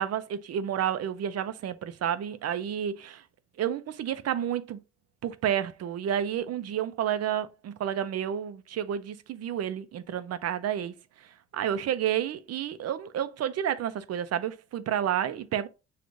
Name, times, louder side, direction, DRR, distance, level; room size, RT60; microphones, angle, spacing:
voice 1, 0.0-3.2 3.6-4.8 5.2-10.9 11.5-15.7, right 10 dB, 55° right, 0.6 m, -30 dB
6.1 x 2.4 x 2.6 m
cardioid pair, 90°, 30 cm